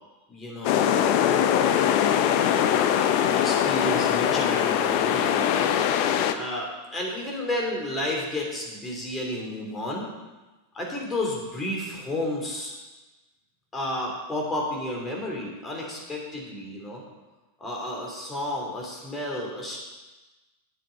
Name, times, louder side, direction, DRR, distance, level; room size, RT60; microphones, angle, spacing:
voice 1, 0.3-0.9 2.9-5.6 6.3-10.1 10.7-12.7 13.7-17.0 17.6-19.8, left 1 dB, 15° left, -1 dB, 3.1 m, -31 dB
sound 1, 0.6-6.3, left 9 dB, 45° left, 0.7 m, -22 dB
10.0 x 7.5 x 5.5 m, 1.2 s
figure-of-eight pair, 90°, 0 cm